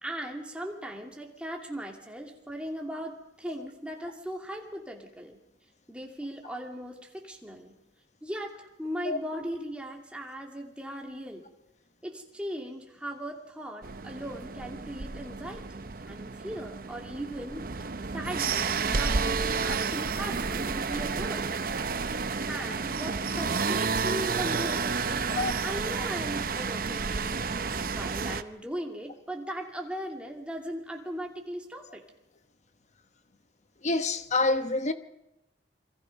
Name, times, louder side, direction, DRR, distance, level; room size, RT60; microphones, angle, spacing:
voice 1, 0.0-5.4 5.9-7.8 8.2-11.5 12.0-21.5 22.5-27.4 27.9-32.0, equal, 5° right, 2.6 m, -38 dB
sound 1, 13.8-28.4, right 5 dB, 55° right, 0.8 m, -31 dB
voice 2, 33.8-34.9, left 3 dB, 40° left, 1.1 m, -27 dB
27.5 x 23.5 x 5.4 m
head